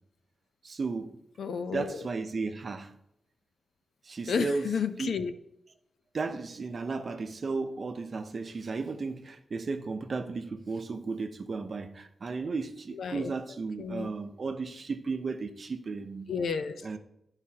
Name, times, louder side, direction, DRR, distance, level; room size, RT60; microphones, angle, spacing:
voice 1, 0.6-1.2 1.7-3.0 4.0-4.7 5.0-5.1 6.1-16.3 16.8-17.0, right 4 dB, 40° right, 0.7 m, -34 dB
voice 2, 1.4-2.0 4.3-5.3 12.9-14.1 16.3-16.9, left 6 dB, 90° left, 0.6 m, -32 dB
13.0 x 4.9 x 2.8 m
wide cardioid pair, 170°, 0 cm